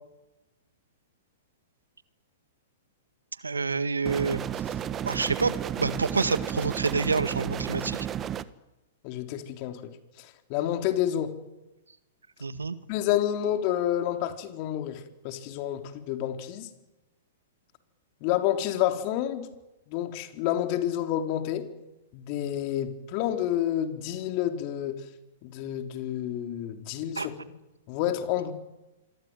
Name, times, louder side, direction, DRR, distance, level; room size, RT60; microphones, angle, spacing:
voice 1, 3.4-4.4 5.0-8.1 12.4-12.8 27.1-27.5, right 4 dB, 85° right, 12 dB, 1.8 m, -28 dB
sound 1, 4.1-8.5, right 9 dB, 25° right, 1.3 m, -33 dB
voice 2, 9.0-9.8 10.2-11.3 12.9-16.7 18.2-19.5 19.9-21.7 22.1-25.0 25.4-27.3 27.9-28.5, left 11 dB, 40° left, 6 dB, 3.8 m, -29 dB
27.0 x 23.5 x 9.2 m, 1.0 s
figure-of-eight pair, 110°, 0 cm